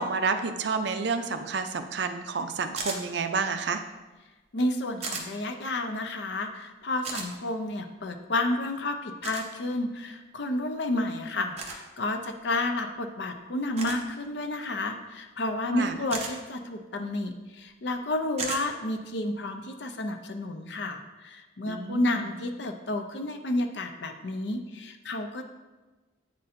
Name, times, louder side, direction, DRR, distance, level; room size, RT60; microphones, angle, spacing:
voice 1, 0.0-3.8 15.7-15.9 21.6-22.3, right 4 dB, 60° right, 8 dB, 0.4 m, -29 dB
sound 1, 2.8-3.0 5.0-5.3 7.0-7.3 9.2-9.5 11.6-11.8 13.8-14.0 16.1-16.3 18.4-18.6, right 4 dB, 35° right, 0.7 m, -34 dB
voice 2, 4.5-25.4, left 2 dB, 65° left, 6 dB, 0.6 m, -31 dB
8.8 x 4.2 x 2.6 m, 1.2 s
head